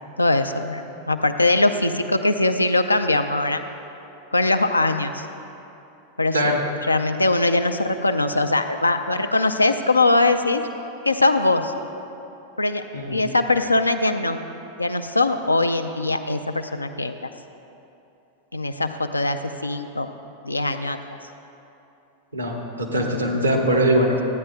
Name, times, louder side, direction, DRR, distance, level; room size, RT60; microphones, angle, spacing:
voice 1, 0.2-3.6 4.3-5.3 6.2-6.6 6.8-10.6 11.0-11.7 12.6-12.8 13.1-14.4 14.8-17.3 18.5-20.1 20.4-21.2 23.0-23.1, left 2 dB, 85° left, 8 dB, 0.4 m, -21 dB
voice 2, 22.3-24.2, right 1 dB, 80° right, 0 dB, 1.1 m, -21 dB
14.0 x 9.3 x 2.3 m, 2.9 s
figure-of-eight pair, 90°, 0 cm